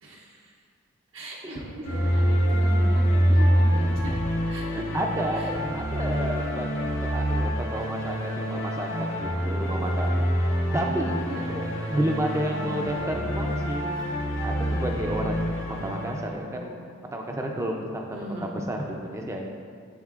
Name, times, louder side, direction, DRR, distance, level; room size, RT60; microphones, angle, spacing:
voice 1, 0.0-0.6 1.1-4.2 4.5-4.9 5.3-5.5 7.5-7.8 11.2-11.5 15.7-16.9 18.1-18.5, right 1 dB, 65° right, -3 dB, 0.7 m, -39 dB
sound 1, 1.8-16.3, equal, 65° left, 0.9 m, -26 dB
voice 2, 4.9-5.4 5.7-13.9 14.4-16.7 17.1-19.5, right 1 dB, 15° right, 1 dB, 0.4 m, -31 dB
10.5 x 3.7 x 2.4 m, 2.1 s
head